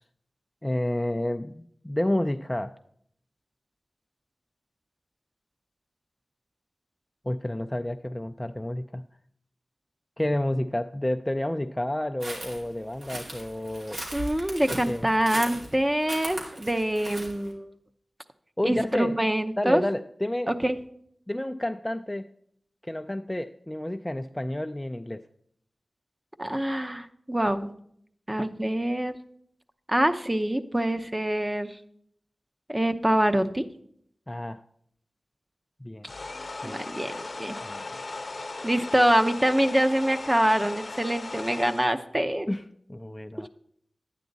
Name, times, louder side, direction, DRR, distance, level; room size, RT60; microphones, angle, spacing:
voice 1, 0.6-2.8 7.2-9.0 10.2-14.1 14.7-15.1 18.6-19.2 19.6-20.5 21.3-22.3 22.8-25.3 34.3-34.6 35.8-36.1 36.6-36.8 37.6-37.8 42.5-43.5, left 1 dB, 15° left, 8 dB, 0.4 m, -30 dB
sound 1, 12.2-17.5, right 1 dB, 75° right, 2.6 m, -38 dB
voice 2, 14.1-17.7 18.6-19.8 20.5-20.8 26.4-27.7 28.3-29.1 29.9-31.8 32.7-33.6 36.6-37.6 38.6-42.5, right 1 dB, 20° right, 8 dB, 0.7 m, -25 dB
sound 2, 36.1-41.9, left 3 dB, 55° left, 0.7 m, -37 dB
11.5 x 9.2 x 4.0 m, 0.69 s
wide cardioid pair, 55°, 0 cm